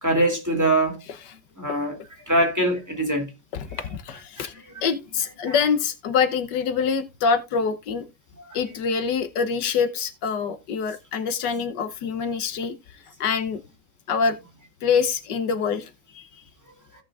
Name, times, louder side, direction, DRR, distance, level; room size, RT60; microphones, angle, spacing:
voice 1, 0.0-1.0 1.6-1.9 2.3-3.3 5.5-5.6, right 1 dB, 10° right, 2.6 m, -22 dB
voice 2, 3.5-4.5 4.8-8.0 8.5-12.7 13.2-13.6 14.1-14.4 14.8-16.3, left 6 dB, 80° left, 1.5 m, -25 dB
16.5 x 5.8 x 2.4 m
omnidirectional pair, 1.9 m